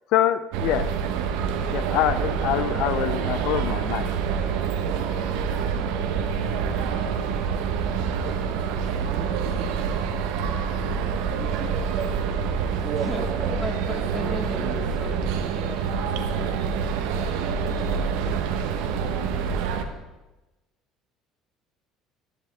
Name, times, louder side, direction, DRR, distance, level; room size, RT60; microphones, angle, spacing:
voice 1, 0.1-0.9 1.7-4.1, left 12 dB, 70° left, 15 dB, 0.4 m, -25 dB
sound 1, 0.5-19.8, right 6 dB, 80° right, 0.9 m, -26 dB
voice 2, 11.4-12.3 12.8-13.7 14.5-14.8, right 6 dB, 60° right, 3 dB, 1.8 m, -34 dB
voice 3, 13.0-17.0 17.3-18.1, left 1 dB, 20° left, 1 dB, 2.2 m, -38 dB
13.5 x 10.0 x 3.4 m, 1.1 s
supercardioid pair, 85°, 0 cm